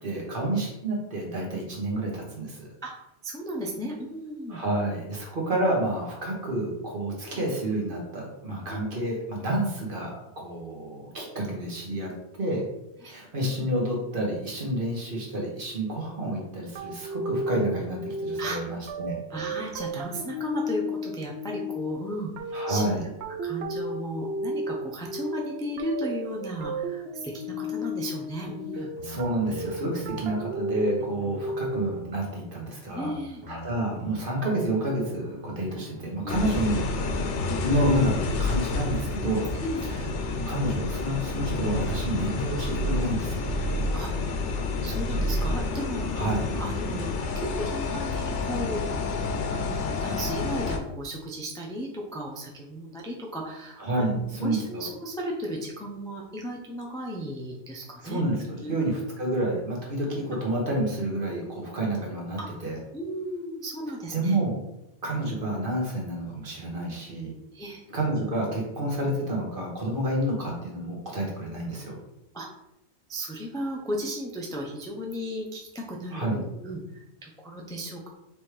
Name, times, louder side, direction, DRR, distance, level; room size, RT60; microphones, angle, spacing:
voice 1, 0.0-2.7 4.5-12.6 13.0-19.2 22.5-23.0 29.0-33.1 33.5-36.8 37.6-38.1 38.4-39.5 40.5-43.4 46.2-46.4 53.8-54.9 58.0-62.8 64.1-64.6 65.0-67.3 67.9-72.0 76.1-76.4, right 1 dB, 50° right, -2 dB, 1.3 m, -29 dB
voice 2, 3.2-4.6 8.7-8.8 13.0-13.1 18.4-18.6 19.3-22.3 22.7-23.0 23.4-28.9 32.9-33.4 36.2-36.4 39.6-39.9 43.9-44.1 44.8-46.3 46.5-48.9 49.5-58.2 58.6-58.7 61.3-61.4 62.4-62.5 62.9-64.4 67.5-67.8 72.3-72.5 73.1-78.1, equal, 5° left, -2 dB, 0.4 m, -35 dB
sound 1, 16.7-32.1, equal, 70° right, 0.8 m, -34 dB
sound 2, 29.0-30.2 31.0-32.2 32.9-34.2 35.0-36.2 36.9-38.2 39.0-40.2 40.9-42.2 43.0-44.2 44.9-45.0, left 2 dB, 25° left, 1.1 m, -43 dB
sound 3, 36.3-50.8, left 3 dB, 90° left, 0.9 m, -29 dB
4.3 x 3.4 x 3.2 m, 0.89 s
omnidirectional pair, 1.2 m